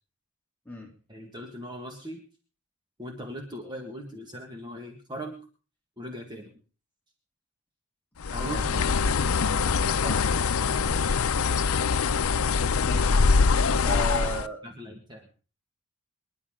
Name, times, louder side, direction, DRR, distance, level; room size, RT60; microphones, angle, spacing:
voice 1, 1.1-2.2 3.0-5.4 6.0-6.5 8.3-8.9 10.8-11.6 13.8-14.2 14.6-15.3, equal, 20° right, 2 dB, 1.7 m, -39 dB
Bird, 8.2-14.5, left 5 dB, 80° left, 0.6 m, -23 dB
voice 2, 8.3-8.8 10.0-10.2 12.0-12.1 12.8-13.2 13.8-14.6, right 2 dB, 10° left, -1 dB, 3.1 m, -36 dB
24.5 x 11.0 x 3.8 m, 0.36 s
head